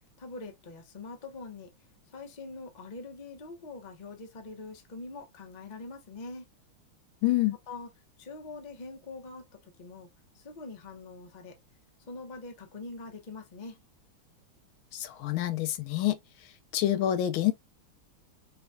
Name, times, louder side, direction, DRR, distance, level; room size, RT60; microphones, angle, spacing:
voice 1, 0.2-1.7 2.1-6.5 7.7-7.9 8.2-10.1 10.3-11.6 12.1-13.8, left 3 dB, 50° left, 0.5 m, -43 dB
voice 2, 7.2-7.6 14.9-16.2 16.7-17.5, left 13 dB, 75° left, 1.3 m, -27 dB
5.0 x 2.2 x 2.6 m
omnidirectional pair, 2.4 m